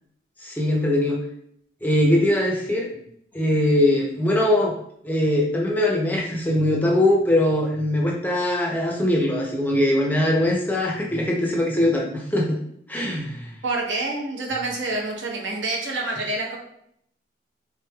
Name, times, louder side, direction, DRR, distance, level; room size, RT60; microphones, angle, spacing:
voice 1, 0.4-1.2 1.8-2.9 3.3-4.8 5.0-12.6 12.9-13.5, left 1 dB, 10° left, -2 dB, 0.4 m, -21 dB
voice 2, 13.6-16.6, right 2 dB, 85° right, -1 dB, 0.9 m, -27 dB
3.7 x 3.1 x 2.2 m, 0.71 s
head